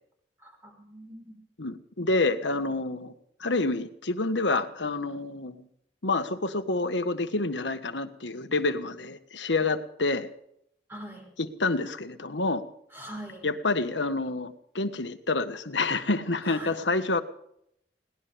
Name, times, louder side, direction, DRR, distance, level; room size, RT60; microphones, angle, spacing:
voice 1, 0.4-1.4 10.9-11.3 12.9-13.5 16.4-16.7, right 1 dB, 15° right, 1 dB, 5.6 m, -42 dB
voice 2, 1.6-3.1 3.4-5.6 6.0-10.3 11.4-12.6 13.4-17.2, left 3 dB, 80° left, 8 dB, 1.5 m, -28 dB
21.5 x 18.5 x 3.5 m, 0.72 s
head